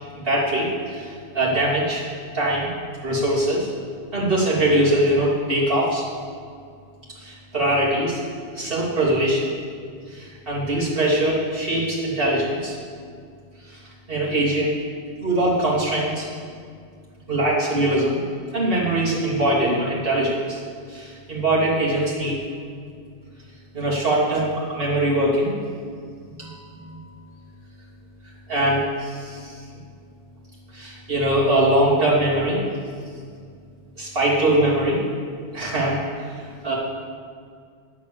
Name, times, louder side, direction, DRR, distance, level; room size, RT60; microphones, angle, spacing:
voice 1, 0.2-2.1 2.3-2.7 3.0-3.7 4.1-6.0 7.2-8.2 8.5-9.4 10.1-12.7 13.7-13.8 14.1-14.7 15.2-16.2 17.3-18.2 18.5-20.6 20.9-22.4 23.7-25.5 26.2-27.0 28.5-29.6 30.7-32.6 34.0-35.0 35.5-36.8, right 1 dB, 65° right, -8 dB, 3.1 m, -22 dB
9.0 x 6.9 x 7.2 m, 2.1 s
omnidirectional pair, 1.1 m